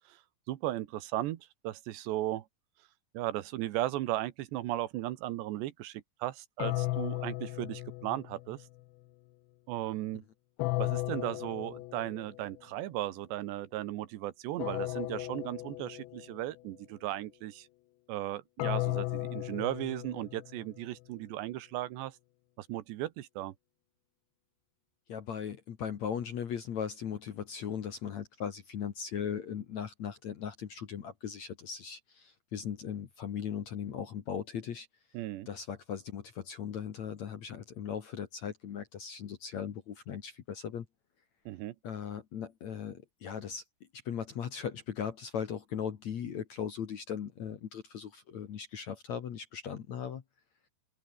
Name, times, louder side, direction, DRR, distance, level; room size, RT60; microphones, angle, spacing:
voice 1, 0.5-2.5 3.1-8.6 9.7-10.2 10.8-17.7 18.1-22.2 22.6-23.5 35.1-35.5 41.5-41.8, right 15 dB, 75° right, 3.3 m, -36 dB
sound 1, 6.6-8.6 10.6-12.4 14.6-16.4 18.6-20.8, left 18 dB, 80° left, 3.1 m, -35 dB
voice 2, 25.1-34.9 35.5-40.9 41.8-43.6 44.1-50.2, left 8 dB, 55° left, 2.2 m, -38 dB
open air
omnidirectional pair, 5.1 m